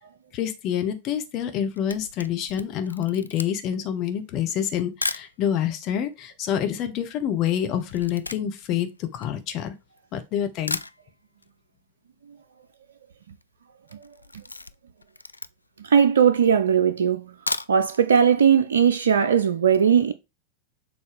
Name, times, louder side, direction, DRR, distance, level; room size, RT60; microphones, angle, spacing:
voice 1, 0.3-9.7 10.1-10.8, left 9 dB, 40° left, 0.9 m, -27 dB
Camera, 1.6-5.3 6.0-6.1 6.3-10.0 10.4-10.5 10.7-11.5 11.8-11.9 12.2-12.3 12.5-12.9 13.2-13.5 13.8-15.8 16.3-16.4 17.2-18.0 18.4-18.5 18.8-18.9, left 3 dB, 80° left, 0.3 m, -35 dB
voice 2, 15.8-17.3 17.7-20.1, right 7 dB, 65° right, 0.4 m, -19 dB
6.9 x 4.2 x 3.3 m
figure-of-eight pair, 90°, 0 cm